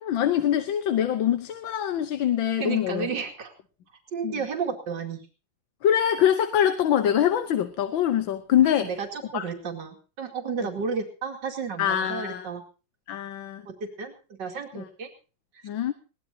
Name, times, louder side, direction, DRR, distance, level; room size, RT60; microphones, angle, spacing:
voice 1, 0.0-3.1 4.2-4.3 5.8-8.9 9.3-9.4 11.8-12.5 13.1-13.6 14.7-14.8 15.6-15.9, left 10 dB, 75° left, 10 dB, 1.7 m, -24 dB
voice 2, 2.6-3.5 4.1-5.2 8.6-12.6 13.7-15.1 15.5-15.6, right 5 dB, 65° right, 3 dB, 3.0 m, -32 dB
21.5 x 18.5 x 2.8 m, 0.35 s
omnidirectional pair, 2.1 m